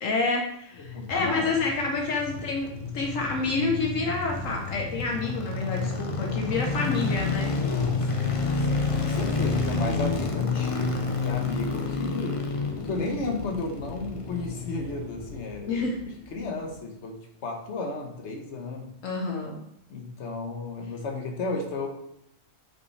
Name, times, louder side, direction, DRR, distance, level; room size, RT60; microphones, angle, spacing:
voice 1, 0.0-7.6 12.0-12.3 15.7-16.2 19.0-19.6, left 3 dB, 80° left, 1 dB, 1.3 m, -28 dB
voice 2, 0.8-1.6 7.7-12.5 12.8-15.9 16.3-19.0 19.9-21.9, left 3 dB, 60° left, 2 dB, 1.4 m, -34 dB
sound 1, 0.8-16.0 16.3-16.4, left 4 dB, 35° left, 0.6 m, -30 dB
8.2 x 5.3 x 3.2 m, 0.76 s
omnidirectional pair, 1.3 m